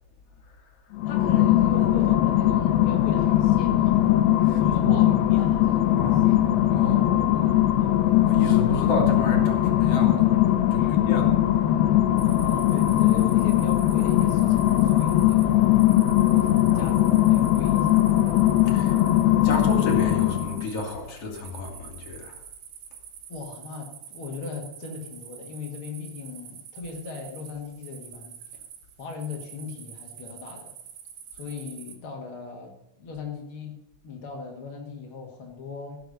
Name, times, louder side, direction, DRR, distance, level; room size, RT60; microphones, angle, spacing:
sound 1, 0.9-20.7, left 13 dB, 80° left, 2.1 m, -20 dB
voice 1, 1.0-4.1 4.6-6.4 6.8-7.2 7.7-8.0 10.8-10.9 12.2-15.7 16.3-18.0 23.3-28.3 29.0-30.7 31.4-33.8 34.0-36.0, left 4 dB, 60° left, 0 dB, 1.4 m, -38 dB
voice 2, 4.4-5.0 6.0-6.4 6.7-7.3 8.1-11.9 18.7-19.0 19.4-22.4, left 2 dB, 45° left, 1 dB, 2.2 m, -31 dB
midnight grasshopper, 12.2-32.0, right 9 dB, 75° right, 4.0 m, -45 dB
16.5 x 6.9 x 6.6 m, 0.86 s
omnidirectional pair, 5.4 m